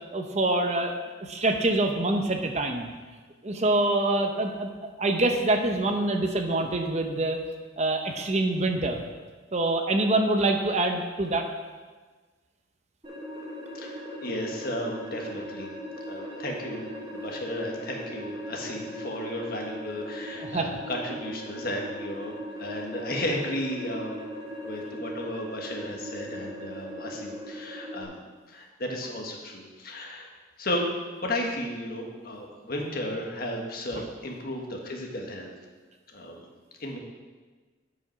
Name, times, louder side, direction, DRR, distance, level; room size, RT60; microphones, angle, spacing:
voice 1, 0.1-0.9 1.2-2.9 3.4-4.7 5.0-7.4 7.8-9.0 9.5-11.5 20.4-20.7, right 2 dB, 35° right, 4 dB, 0.8 m, -25 dB
sound 1, 13.0-28.0, equal, 20° right, 2.2 m, -39 dB
voice 2, 13.7-15.7 16.1-22.3 22.6-24.2 24.6-28.2 28.5-30.3 30.6-30.9 31.2-35.5 36.1-36.4 36.8-37.0, left 1 dB, 50° left, 0 dB, 1.6 m, -34 dB
11.0 x 5.2 x 5.9 m, 1.4 s
head